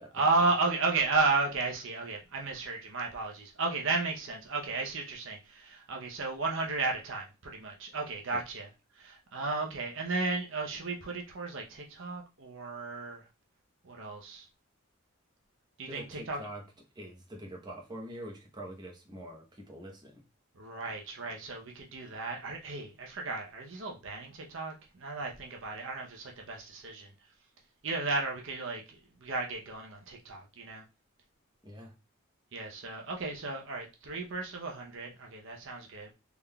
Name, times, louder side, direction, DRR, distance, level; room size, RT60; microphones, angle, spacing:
voice 1, 0.1-8.7 8.9-13.3 13.8-14.5 15.8-16.4 20.5-27.1 27.8-30.8 32.5-36.1, right 3 dB, 60° right, 0.7 m, -34 dB
voice 2, 15.9-16.6 16.9-20.2 31.6-31.9, right 1 dB, 20° right, 0.8 m, -44 dB
3.6 x 3.5 x 2.2 m
head